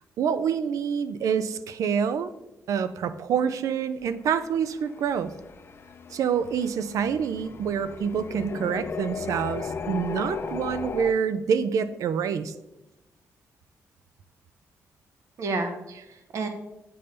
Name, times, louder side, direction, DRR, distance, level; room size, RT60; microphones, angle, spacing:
voice 1, 0.2-2.3 2.7-5.3 6.1-12.5, right 7 dB, 85° right, 13 dB, 0.4 m, -27 dB
sound 1, 4.0-11.1, left 5 dB, 45° left, 0.4 m, -36 dB
voice 2, 6.7-7.1 15.4-16.5, right 3 dB, 65° right, 6 dB, 1.0 m, -33 dB
8.5 x 5.3 x 3.3 m, 0.94 s
wide cardioid pair, 130°, 6 cm